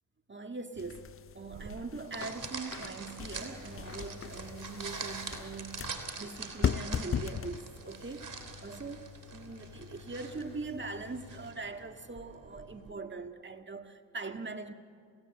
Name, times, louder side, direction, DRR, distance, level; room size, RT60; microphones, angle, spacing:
voice 1, 0.3-14.7, right 3 dB, 25° right, 1.8 m, -42 dB
sound 1, 0.8-11.5, left 8 dB, 30° left, 0.5 m, -40 dB
sound 2, 1.5-12.9, right 4 dB, 40° right, 3.4 m, -44 dB
29.5 x 17.0 x 7.7 m
supercardioid pair, 55°, 46 cm